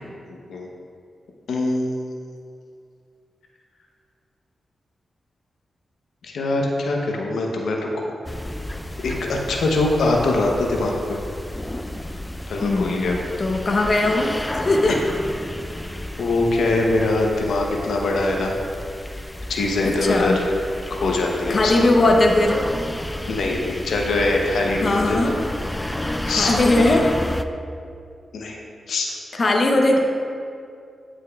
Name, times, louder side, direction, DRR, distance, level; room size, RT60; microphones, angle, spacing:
voice 1, 0.3-0.7 1.5-2.2 6.2-8.1 9.0-11.2 12.5-13.2 14.9-15.0 16.2-18.6 19.5-20.5 20.9-21.9 23.2-25.3 26.3-26.6 28.3-28.6 28.9-29.1, left 2 dB, 85° left, 0 dB, 0.7 m, -23 dB
sound 1, 8.2-27.4, left 1 dB, 10° left, 0.3 m, -31 dB
voice 2, 12.6-15.0 19.8-20.4 21.5-22.6 24.8-25.3 26.4-27.2 29.3-30.0, left 2 dB, 50° left, 1 dB, 0.7 m, -19 dB
9.6 x 6.3 x 2.3 m, 2.4 s
cardioid pair, 65°, 0 cm